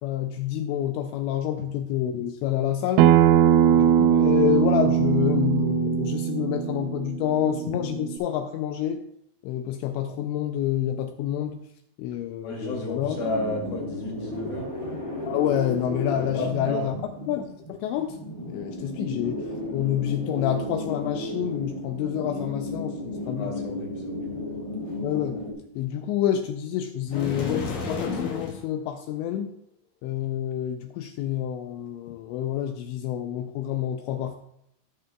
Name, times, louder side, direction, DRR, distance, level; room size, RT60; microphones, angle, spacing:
voice 1, 0.0-3.1 3.7-9.0 9.4-11.6 12.0-13.2 15.3-17.0 17.3-19.4 19.7-23.5 25.0-25.4 25.8-29.5 30.0-34.4, left 11 dB, 85° left, 6 dB, 2.6 m, -28 dB
Acoustic guitar, 3.0-8.2, right 10 dB, 90° right, 3.1 m, -21 dB
voice 2, 12.4-14.7 16.3-17.0 23.3-24.3, left 1 dB, 55° left, -2 dB, 3.8 m, -32 dB
sound 1, 13.0-25.5, left 1 dB, 25° left, 0.7 m, -34 dB
sound 2, 27.1-28.6, left 4 dB, 70° left, 1.9 m, -31 dB
17.5 x 6.6 x 2.3 m, 0.75 s
omnidirectional pair, 5.5 m